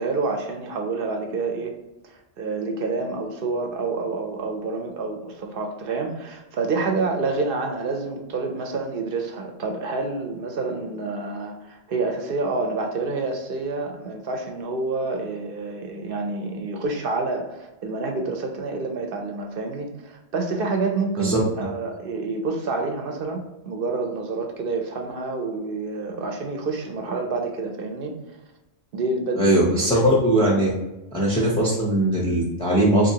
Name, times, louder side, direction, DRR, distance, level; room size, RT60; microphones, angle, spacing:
voice 1, 0.0-1.7 2.0-28.1 28.9-29.9, right 3 dB, 60° right, 3 dB, 0.7 m, -28 dB
voice 2, 29.4-30.7 31.1-33.1, right 1 dB, 5° left, -5 dB, 0.4 m, -20 dB
3.8 x 2.7 x 2.7 m, 0.96 s
omnidirectional pair, 1.2 m